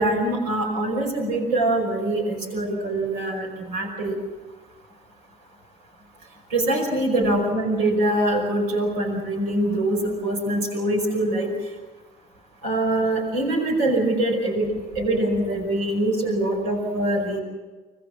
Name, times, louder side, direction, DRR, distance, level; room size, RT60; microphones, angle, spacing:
voice 1, 0.0-4.2 6.5-11.5 12.6-14.7 15.0-17.4, right 1 dB, 85° right, 1 dB, 5.4 m, -23 dB
26.0 x 19.5 x 7.4 m, 1.3 s
hypercardioid pair, 50°, 19 cm